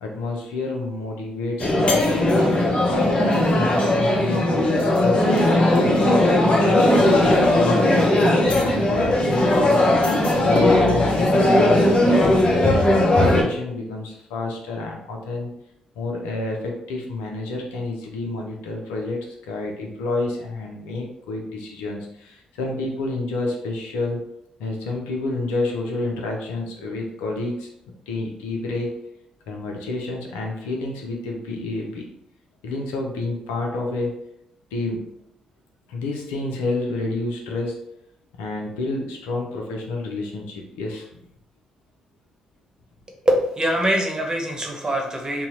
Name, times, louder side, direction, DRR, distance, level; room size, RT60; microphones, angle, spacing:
voice 1, 0.0-3.0 4.2-9.8 10.3-15.5 16.0-19.2 19.5-24.2 24.6-27.7 28.1-28.9 29.5-32.0 32.6-34.1 34.7-35.0 35.9-37.8 38.4-41.2, left 2 dB, 90° left, 0 dB, 0.6 m, -29 dB
sound 1, 1.6-13.4, left 1 dB, 45° left, 0.9 m, -18 dB
voice 2, 43.2-45.5, equal, 30° right, 1 dB, 1.1 m, -23 dB
2.8 x 2.3 x 4.2 m, 0.76 s
hypercardioid pair, 50°, 3 cm